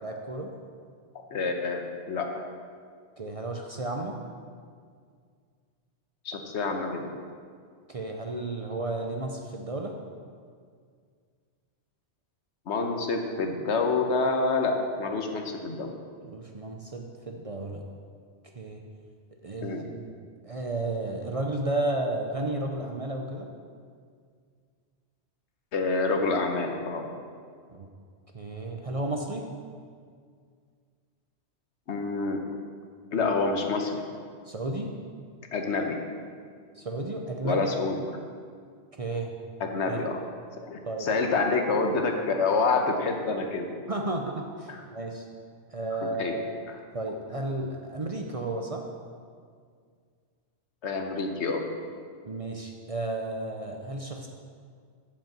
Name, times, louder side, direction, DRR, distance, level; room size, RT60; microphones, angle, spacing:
voice 1, 0.0-0.5 3.2-4.1 7.9-9.9 16.3-17.8 18.6-18.8 19.4-20.0 20.4-23.5 27.7-27.9 28.3-29.5 34.5-34.9 36.8-37.7 39.0-39.4 39.9-40.0 40.8-41.1 43.9-45.3 45.7-46.4 46.9-48.8 52.2-54.3, right 2 dB, 40° right, 2 dB, 0.6 m, -33 dB
voice 2, 1.3-2.3 6.2-7.0 12.7-15.9 19.6-19.8 25.7-27.0 31.9-32.4 33.1-34.1 35.5-36.0 37.4-38.0 39.6-40.2 40.6-43.7 46.0-46.3 50.8-51.6, left 3 dB, 80° left, 4 dB, 1.2 m, -27 dB
7.5 x 5.5 x 7.4 m, 2.1 s
omnidirectional pair, 1.2 m